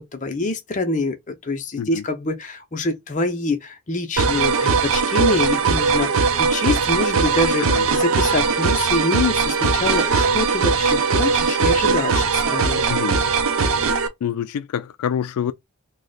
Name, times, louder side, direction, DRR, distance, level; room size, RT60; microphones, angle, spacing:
voice 1, 0.0-7.6 7.9-12.8, left 2 dB, 35° left, 0.6 m, -25 dB
sound 1, 4.2-14.1, right 5 dB, 65° right, 0.5 m, -20 dB
voice 2, 12.9-13.2 14.2-15.5, left 8 dB, 80° left, 0.3 m, -26 dB
3.0 x 2.1 x 3.8 m
head